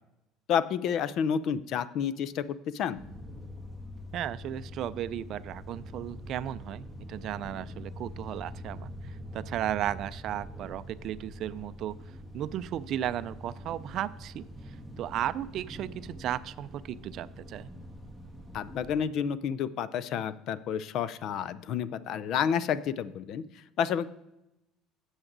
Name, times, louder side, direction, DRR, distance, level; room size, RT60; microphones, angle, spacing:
voice 1, 0.5-2.4 2.7-3.0 18.5-23.4 23.8-24.1, left 8 dB, 55° left, 17 dB, 0.5 m, -30 dB
sound 1, 2.9-19.0, equal, 5° left, 1.7 m, -44 dB
voice 2, 4.1-8.9 9.3-12.0 12.3-14.4 15.0-17.7, right 11 dB, 50° right, 16 dB, 0.4 m, -35 dB
12.0 x 7.9 x 3.9 m, 0.90 s
cardioid pair, 135°, 0 cm